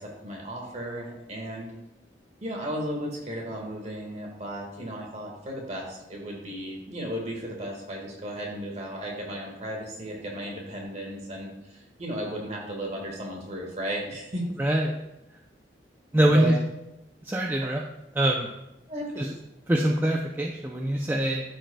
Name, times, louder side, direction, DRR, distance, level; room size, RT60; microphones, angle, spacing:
voice 1, 0.0-1.7 2.4-14.5 16.2-16.5 17.6-17.7 18.9-19.3, right 1 dB, 35° right, -1 dB, 1.7 m, -35 dB
voice 2, 14.6-14.9 16.1-16.5 17.2-17.8 18.1-18.5 19.2-19.3 19.7-21.4, right 1 dB, 10° right, 0 dB, 0.4 m, -23 dB
13.0 x 5.1 x 2.3 m, 0.91 s
head